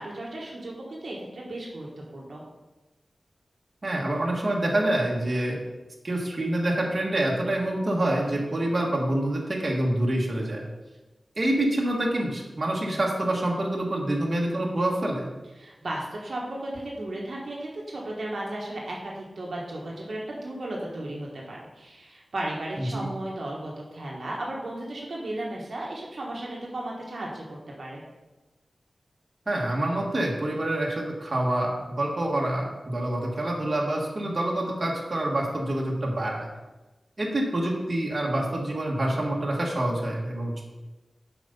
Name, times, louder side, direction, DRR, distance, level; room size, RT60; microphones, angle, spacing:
voice 1, 0.0-2.4 15.6-28.0, right 1 dB, 70° right, -3 dB, 1.5 m, -35 dB
voice 2, 3.8-5.6 6.0-10.6 11.3-15.3 22.8-23.0 29.4-36.5 37.2-40.6, right 1 dB, 45° right, -2 dB, 1.7 m, -26 dB
7.4 x 5.2 x 5.5 m, 1.1 s
wide cardioid pair, 75°, 0 cm